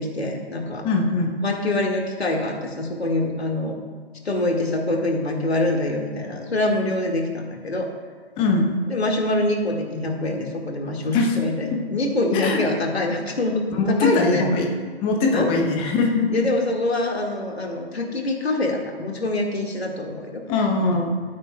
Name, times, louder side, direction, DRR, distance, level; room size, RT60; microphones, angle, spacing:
voice 1, 0.0-0.9 1.4-3.8 4.2-7.9 8.9-14.5 15.3-15.5 16.3-20.4, left 2 dB, 75° left, 1 dB, 1.9 m, -25 dB
voice 2, 0.8-1.4 8.4-8.7 11.1-11.3 12.3-12.6 13.7-14.7 15.0-16.5 20.5-21.2, left 3 dB, 15° left, 1 dB, 1.0 m, -21 dB
14.0 x 8.5 x 2.3 m, 1.5 s
figure-of-eight pair, 135°, 32 cm